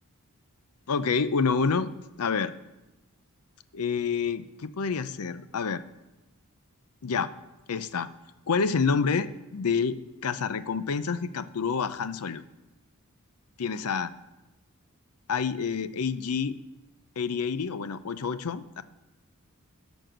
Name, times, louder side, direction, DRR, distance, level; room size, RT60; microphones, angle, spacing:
voice 1, 0.9-1.9 2.2-2.5 3.7-5.8 7.0-7.3 7.7-8.1 8.5-12.4 13.6-14.1 15.3-16.6 17.2-18.8, left 5 dB, 80° left, 14 dB, 0.6 m, -28 dB
11.5 x 6.2 x 6.2 m, 1.0 s
head